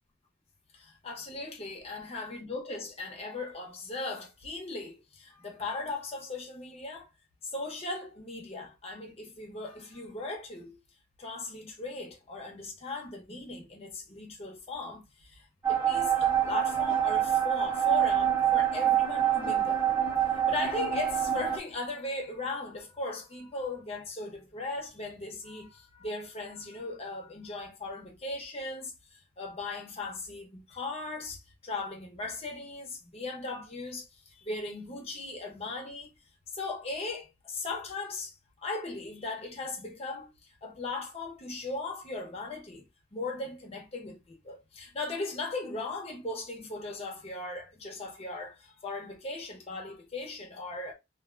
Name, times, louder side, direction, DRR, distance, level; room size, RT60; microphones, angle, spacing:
voice 1, 1.0-7.1 7.4-10.8 11.2-19.8 20.5-36.1 36.5-40.3 40.6-42.9 43.1-50.9, left 3 dB, 35° left, 0.9 m, -38 dB
sound 1, 15.6-21.6, right 10 dB, 10° right, 1.0 m, -26 dB
2.5 x 2.2 x 2.5 m
head